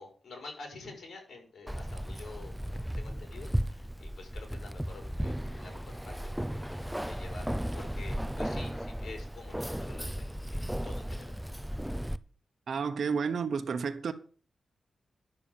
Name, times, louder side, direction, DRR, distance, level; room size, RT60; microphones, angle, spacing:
voice 1, 0.0-6.7 7.0-11.3, left 3 dB, 70° left, 5.1 m, -48 dB
Keys jangling, 1.7-12.2, equal, 5° right, 0.6 m, -35 dB
voice 2, 12.7-14.1, right 5 dB, 75° right, 1.0 m, -31 dB
10.5 x 7.0 x 7.2 m
cardioid pair, 70°, 0 cm